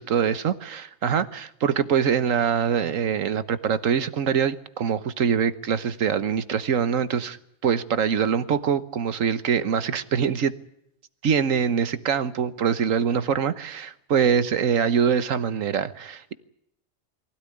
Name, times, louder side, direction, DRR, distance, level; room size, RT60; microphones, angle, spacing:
voice 1, 0.0-7.4 7.6-10.5 11.2-16.3, right 7 dB, 70° right, 1.5 m, -24 dB
23.5 x 16.5 x 9.9 m
omnidirectional pair, 1.4 m